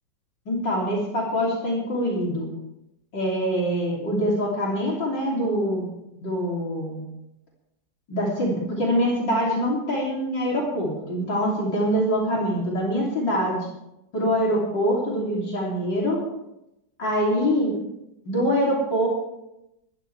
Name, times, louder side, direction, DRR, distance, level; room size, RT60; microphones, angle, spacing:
voice 1, 0.5-2.5 3.1-5.9 6.2-7.0 8.1-13.6 14.1-16.2 17.0-17.7 18.3-19.1, equal, 65° left, -4 dB, 3.9 m, -24 dB
20.0 x 13.5 x 3.4 m, 0.87 s
omnidirectional pair, 2.1 m